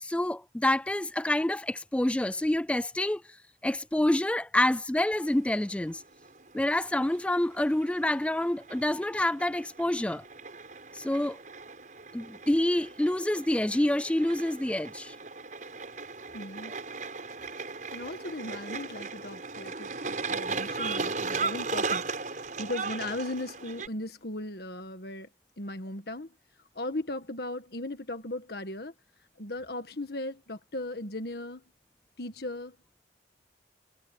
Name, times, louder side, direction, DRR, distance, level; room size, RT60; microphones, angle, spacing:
voice 1, 0.0-3.2 3.6-6.0 6.5-10.2 10.9-11.4 12.1-15.2, left 1 dB, 5° left, 0.3 m, -27 dB
sound 1, 5.1-23.9, right 4 dB, 45° right, 6.6 m, -37 dB
voice 2, 16.3-16.7 17.9-25.3 25.6-26.3 26.7-28.9 29.4-31.6 32.2-32.8, left 1 dB, 60° left, 1.7 m, -37 dB
head